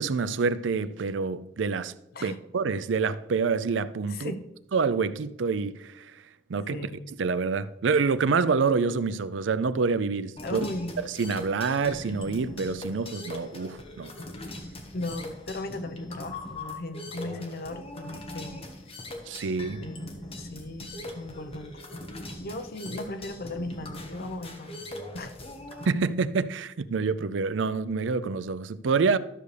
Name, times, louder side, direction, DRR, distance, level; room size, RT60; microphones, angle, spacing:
voice 1, 0.0-1.9 2.2-4.3 4.7-6.1 6.5-6.8 7.2-10.6 11.2-14.1 19.3-19.8 25.9-29.2, right 4 dB, 80° right, 0.5 m, -27 dB
voice 2, 4.1-4.4 6.7-7.0 10.4-11.0 14.9-18.6 19.8-21.7 22.4-24.9 25.1-25.4, left 2 dB, 55° left, 0.9 m, -37 dB
sound 1, 10.4-25.9, left 1 dB, 35° left, 1.3 m, -41 dB
13.0 x 6.7 x 3.3 m
head